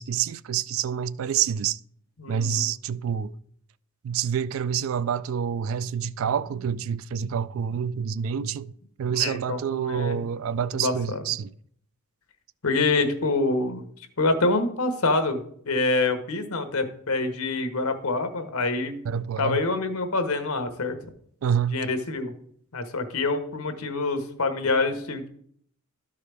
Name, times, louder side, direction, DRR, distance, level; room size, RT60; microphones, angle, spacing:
voice 1, 0.0-1.8 2.3-3.3 4.0-8.7 9.0-11.5 19.1-19.6 21.4-21.8, right 8 dB, 65° right, 0.3 m, -27 dB
voice 2, 2.2-2.7 9.1-10.2 10.7-11.2 12.6-13.8 14.2-19.0 19.4-21.0 21.7-22.3 22.7-25.3, left 3 dB, 85° left, 1.0 m, -26 dB
12.5 x 4.8 x 3.4 m
head